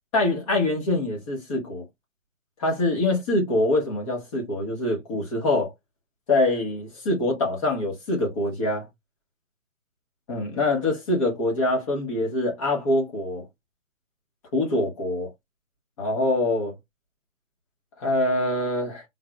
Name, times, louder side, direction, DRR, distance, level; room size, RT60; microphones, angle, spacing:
voice 1, 0.1-1.8 2.6-5.7 6.3-8.9 10.3-13.4 14.5-15.3 16.0-16.7 18.0-19.0, left 2 dB, 25° left, 1.4 m, -24 dB
3.9 x 3.5 x 2.3 m
figure-of-eight pair, 140°, 38 cm